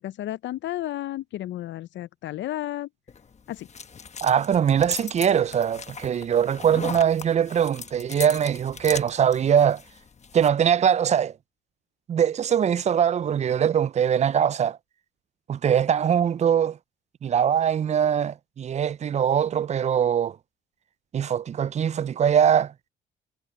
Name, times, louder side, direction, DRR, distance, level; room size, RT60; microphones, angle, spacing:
voice 1, 0.0-2.9 3.5-3.7, left 14 dB, 70° left, 0.5 m, -32 dB
sound 1, 3.1-10.5, left 6 dB, 35° left, 1.1 m, -39 dB
voice 2, 4.2-9.8 10.3-11.3 12.1-14.8 15.5-16.8 17.2-20.4 21.1-22.7, right 8 dB, 35° right, 0.4 m, -22 dB
cardioid pair, 90°, 20 cm